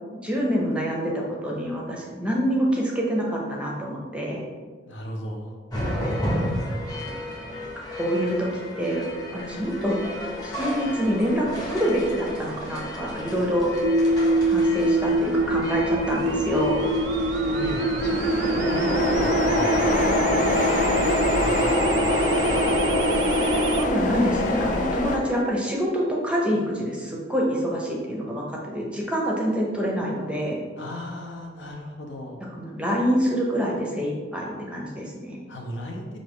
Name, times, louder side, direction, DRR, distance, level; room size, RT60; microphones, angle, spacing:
voice 1, 0.2-4.5 7.8-9.1 9.3-10.0 10.4-13.7 14.4-16.9 23.8-30.6 32.5-35.4, equal, 5° right, -3 dB, 0.6 m, -26 dB
voice 2, 4.8-5.5 17.4-19.8 20.1-21.6 30.8-32.5 35.5-36.2, left 1 dB, 75° left, 0 dB, 0.8 m, -36 dB
sound 1, 5.7-25.4, left 1 dB, 20° left, 0.8 m, -34 dB
sound 2, 10.2-10.4 10.8-25.2, left 2 dB, 40° left, 0.3 m, -26 dB
sound 3, 13.8-23.8, right 2 dB, 65° right, 0.3 m, -24 dB
5.0 x 2.6 x 3.5 m, 1.5 s
head